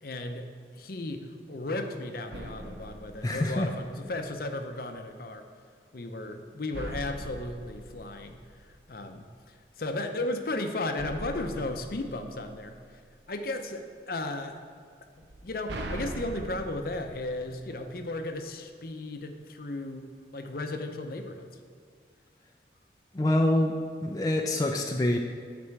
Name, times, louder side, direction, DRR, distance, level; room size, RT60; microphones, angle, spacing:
voice 1, 0.0-5.4 5.9-9.3 9.8-13.0 13.3-14.6 15.2-21.5, left 2 dB, 55° left, 6 dB, 0.6 m, -35 dB
sound 1, 2.3-4.2 6.7-9.1 11.0-13.2 15.2-18.3, right 1 dB, 75° right, 0.7 m, -42 dB
voice 2, 3.2-3.7 23.1-23.7 24.0-25.2, left 1 dB, 20° left, 2 dB, 0.4 m, -25 dB
9.7 x 4.2 x 5.9 m, 2.1 s
head